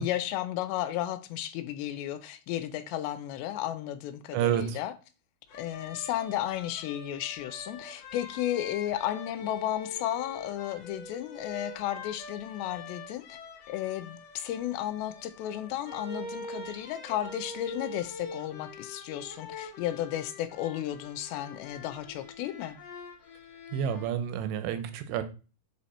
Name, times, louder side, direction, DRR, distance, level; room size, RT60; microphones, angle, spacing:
voice 1, 0.0-4.9 5.6-13.4 13.7-22.8, left 12 dB, 85° left, 2.7 m, -33 dB
voice 2, 4.3-4.8 23.7-25.2, right 9 dB, 85° right, 3.1 m, -29 dB
sound 1, 5.5-24.1, left 2 dB, 65° left, 1.6 m, -44 dB
7.7 x 4.3 x 4.3 m
omnidirectional pair, 5.1 m